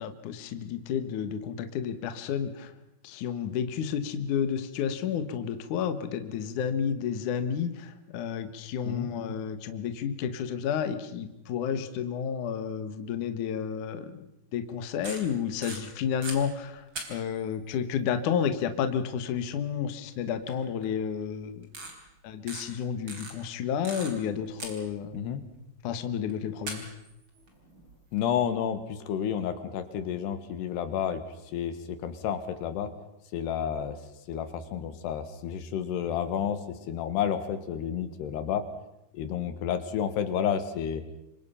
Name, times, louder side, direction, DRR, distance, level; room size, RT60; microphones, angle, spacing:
voice 1, 0.0-2.7 3.0-21.7 22.2-25.2 25.8-26.9, left 8 dB, 60° left, 9 dB, 2.5 m, -31 dB
sound 1, 14.8-16.4 16.9-17.5 19.3-19.4 20.5-20.6 20.8-20.9 21.6-21.9 22.5-22.6 23.1-24.3 24.6-25.3 26.3-26.4 26.7-28.3, right 2 dB, 30° right, 4.4 m, -39 dB
voice 2, 28.1-31.2 31.5-32.9 33.3-34.0 34.3-38.7 39.1-41.0, left 8 dB, 80° left, 10 dB, 3.6 m, -30 dB
27.5 x 24.0 x 5.7 m, 0.89 s
omnidirectional pair, 4.7 m